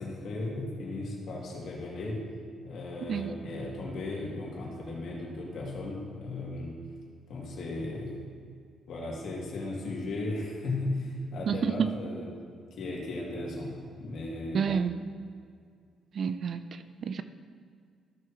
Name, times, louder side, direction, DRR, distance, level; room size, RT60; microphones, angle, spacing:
voice 1, 0.0-2.3 2.6-6.8 7.3-8.2 8.9-12.2 12.7-14.7, left 2 dB, 65° left, -3 dB, 2.6 m, -36 dB
voice 2, 3.0-3.5 11.5-11.9 14.5-15.0 16.1-17.2, right 7 dB, 55° right, 11 dB, 0.5 m, -30 dB
14.5 x 6.6 x 3.1 m, 2.2 s
cardioid pair, 90°, 0 cm